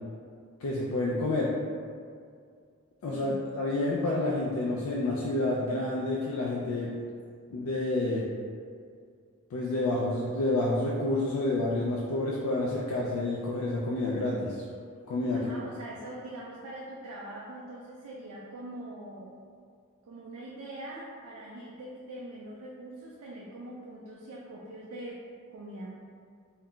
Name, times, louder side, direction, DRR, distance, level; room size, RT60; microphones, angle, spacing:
voice 1, 0.6-1.5 3.0-6.9 7.5-8.3 9.5-14.6 15.1-15.5, left 2 dB, 70° left, -5 dB, 0.3 m, -29 dB
voice 2, 15.3-19.3 20.0-25.9, right 1 dB, 75° right, -4 dB, 0.4 m, -43 dB
2.3 x 2.1 x 3.6 m, 2.2 s
head